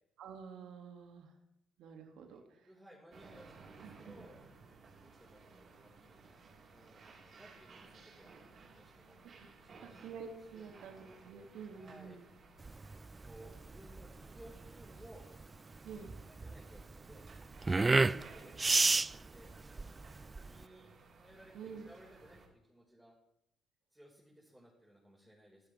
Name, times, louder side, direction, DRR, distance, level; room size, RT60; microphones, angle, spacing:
voice 1, 0.2-1.3 1.8-2.7 3.8-4.3 9.3-9.5 9.8-12.3 15.8-16.1 17.9-18.3 21.5-21.9, right 6 dB, 70° right, 3 dB, 2.9 m, -49 dB
voice 2, 2.3-4.4 5.0-6.4 6.7-8.3 8.7-9.2 9.6-10.0 10.5-10.8 11.8-12.2 13.0-15.3 16.3-17.3 17.8-19.9 20.3-20.9 21.2-23.1 23.9-25.7, right 1 dB, 5° right, -4 dB, 5.7 m, -59 dB
sound 1, 3.1-22.5, right 4 dB, 55° right, 4.8 m, -58 dB
sound 2, 12.6-20.6, right 3 dB, 25° right, 0.4 m, -32 dB
23.5 x 12.0 x 3.7 m, 0.87 s
hypercardioid pair, 50°, 0 cm